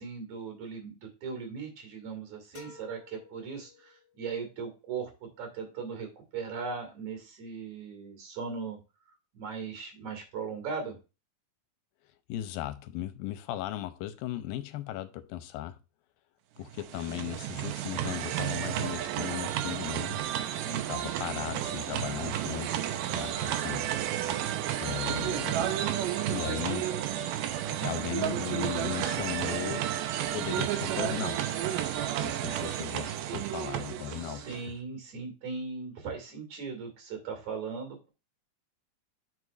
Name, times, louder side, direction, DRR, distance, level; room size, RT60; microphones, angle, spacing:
voice 1, 0.0-6.1 6.3-8.8 9.3-11.0 20.5-20.8 34.1-38.1, right 5 dB, 55° right, 3.5 m, -38 dB
Red Bull Summer, 2.5-4.3, left 4 dB, 50° left, 1.6 m, -53 dB
voice 2, 12.3-15.8 16.6-20.2 20.9-22.7 23.1-23.9 24.8-25.8 26.3-26.9 27.8-29.9 30.3-31.6 32.2-34.6, left 13 dB, 85° left, 2.4 m, -37 dB
sound 1, 16.6-34.7, right 11 dB, 80° right, 2.2 m, -32 dB
9.3 x 6.1 x 2.5 m
omnidirectional pair, 4.2 m